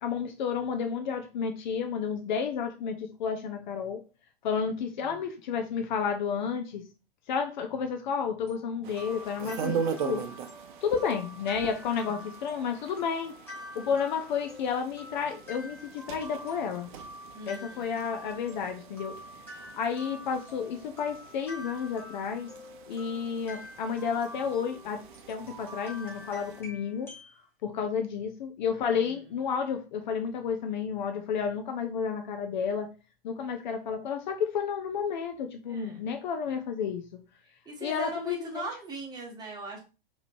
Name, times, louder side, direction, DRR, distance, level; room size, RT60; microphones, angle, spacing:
voice 1, 0.0-4.0 4.4-6.8 7.3-10.2 10.8-13.3 13.7-16.9 17.5-19.2 19.7-22.5 22.9-25.0 25.3-27.1 27.6-32.9 33.2-37.0 37.8-38.7, left 6 dB, 50° left, 6 dB, 0.7 m, -31 dB
sound 1, 8.5-27.3, left 1 dB, 10° left, 1.7 m, -47 dB
sound 2, 8.8-26.6, right 7 dB, 55° right, 0.7 m, -41 dB
voice 2, 17.3-17.9 28.9-29.3 35.7-36.1 37.6-39.8, right 2 dB, 15° right, -2 dB, 1.3 m, -41 dB
4.9 x 3.1 x 2.6 m, 0.32 s
figure-of-eight pair, 100°, 30 cm